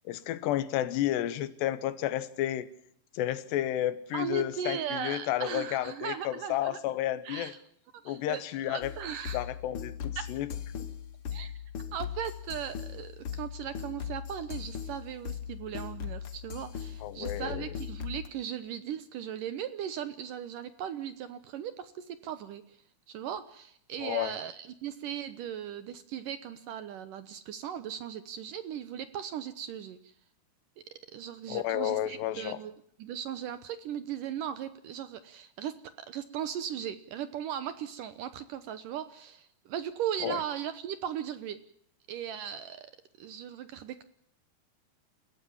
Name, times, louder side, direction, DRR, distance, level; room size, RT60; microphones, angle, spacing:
voice 1, 0.1-2.7 3.1-7.5 8.1-8.9 9.3-10.5 17.0-17.7 24.0-24.4 31.5-32.6 40.2-40.4, left 13 dB, 85° left, 15 dB, 3.3 m, -31 dB
voice 2, 4.1-6.8 7.2-7.6 8.0-9.5 10.2-10.3 11.3-11.5 11.9-22.8 23.1-30.1 31.1-32.7 33.0-41.6 42.1-42.9 43.2-44.0, right 9 dB, 70° right, 13 dB, 2.1 m, -38 dB
sound 1, 8.8-18.3, left 8 dB, 60° left, 1.5 m, -39 dB
29.5 x 15.5 x 7.2 m, 0.69 s
omnidirectional pair, 4.8 m